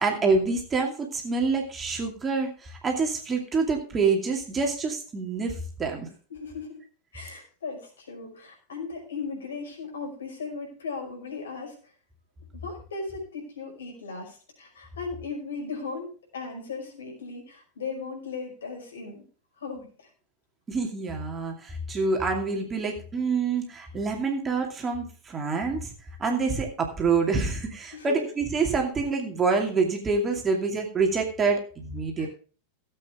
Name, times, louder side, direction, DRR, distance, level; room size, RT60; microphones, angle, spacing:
voice 1, 0.0-6.1 20.7-25.9 26.2-32.3, right 4 dB, 20° right, 1 dB, 2.5 m, -26 dB
voice 2, 6.3-6.8 7.1-11.8 12.6-19.3 19.6-20.1 27.9-28.3 32.2-32.3, left 4 dB, 65° left, 0 dB, 5.4 m, -37 dB
17.0 x 8.1 x 3.6 m, 0.40 s
figure-of-eight pair, 90°, 0 cm